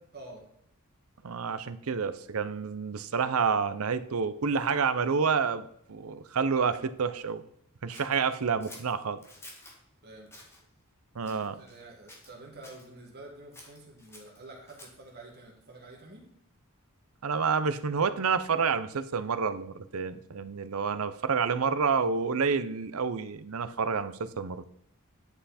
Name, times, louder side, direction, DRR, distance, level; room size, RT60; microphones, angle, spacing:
voice 1, 1.2-7.4 7.8-9.2 11.1-11.6 17.2-24.7, right 5 dB, 75° right, 13 dB, 0.6 m, -29 dB
Scissors, 7.9-9.8 10.3-10.6 11.2-11.8 12.1-12.9 13.5-15.1, left 1 dB, 10° left, 1.7 m, -51 dB
voice 2, 10.0-10.4 11.2-16.2, right 2 dB, 45° right, -1 dB, 2.1 m, -48 dB
10.0 x 5.7 x 4.2 m, 0.68 s
head